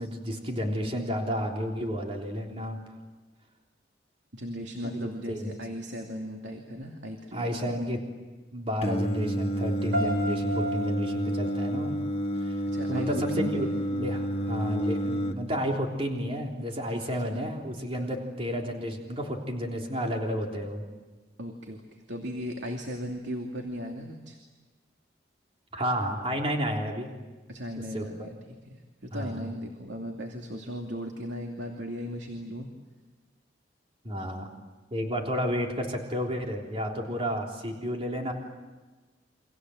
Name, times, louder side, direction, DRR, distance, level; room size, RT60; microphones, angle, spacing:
voice 1, 0.0-2.8 4.8-5.5 7.3-8.0 8.5-12.0 12.4-12.6 12.9-13.7 13.9-20.9 25.7-27.1 27.9-28.3 29.1-29.4 34.0-34.5 34.9-38.3, equal, 30° right, 1 dB, 3.5 m, -31 dB
voice 2, 4.3-7.8 12.7-13.7 18.0-18.1 21.4-24.4 27.5-32.7, equal, 90° right, 2 dB, 2.7 m, -37 dB
Singing, 8.8-15.3, right 1 dB, 35° left, 1.5 m, -30 dB
sound 1, 9.9-12.9, equal, 55° right, 5.0 m, -35 dB
29.5 x 25.5 x 7.9 m, 1.3 s
head